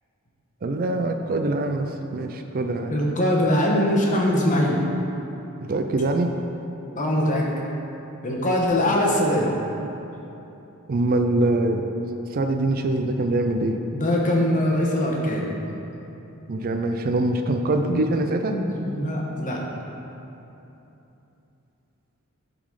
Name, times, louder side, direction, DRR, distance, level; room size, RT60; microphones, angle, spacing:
voice 1, 0.6-2.9 5.7-6.3 10.9-11.9 12.3-13.8 16.5-18.6, right 2 dB, 40° right, 5 dB, 0.4 m, -23 dB
voice 2, 2.9-4.8 6.9-7.5 8.2-9.5 13.9-15.5 17.9-18.1 18.5-19.6, left 1 dB, 35° left, -2 dB, 1.1 m, -22 dB
12.0 x 4.1 x 4.7 m, 3.0 s
head